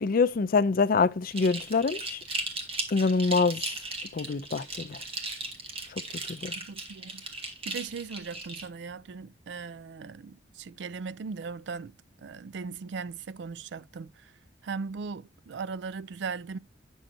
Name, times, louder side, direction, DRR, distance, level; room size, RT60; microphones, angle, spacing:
voice 1, 0.0-2.2 2.9-3.6 4.1-5.0 6.3-6.5, left 4 dB, 55° left, 0.5 m, -25 dB
sound 1, 1.3-8.7, right 2 dB, 35° right, 1.5 m, -37 dB
voice 2, 6.5-7.2 7.7-11.9 12.2-14.1 14.6-16.6, right 5 dB, 70° right, 0.4 m, -38 dB
9.0 x 6.3 x 2.7 m
head